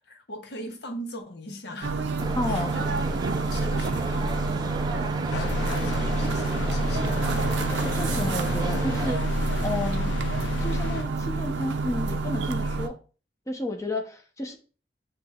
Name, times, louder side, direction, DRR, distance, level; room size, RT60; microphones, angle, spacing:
voice 1, 0.1-2.0 2.5-7.4 7.7-7.8, equal, 65° left, 0.8 m, -41 dB
sound 1, 1.8-12.9, right 3 dB, 80° right, 0.5 m, -28 dB
sound 2, 2.2-9.1, right 2 dB, 25° right, 0.3 m, -34 dB
voice 2, 2.3-2.7 7.7-9.2 9.6-10.1 10.6-12.9 13.5-14.6, left 1 dB, 20° left, 0.8 m, -31 dB
sound 3, 5.3-11.0, left 4 dB, 90° left, 0.4 m, -35 dB
7.4 x 2.9 x 2.4 m
head